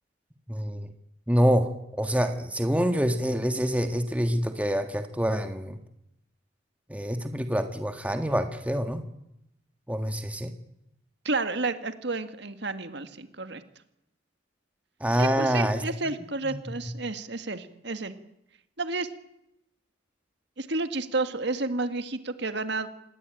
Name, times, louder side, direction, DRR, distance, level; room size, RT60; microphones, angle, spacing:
voice 1, 0.5-0.9 1.3-1.7 2.0-5.8 6.9-9.0 9.9-10.5 15.0-15.8 16.4-16.6, equal, 5° right, 7 dB, 1.6 m, -26 dB
voice 2, 11.2-13.6 15.2-18.1 18.8-19.1 20.6-22.9, right 3 dB, 55° right, 9 dB, 1.8 m, -31 dB
27.0 x 20.0 x 9.1 m, 0.82 s
head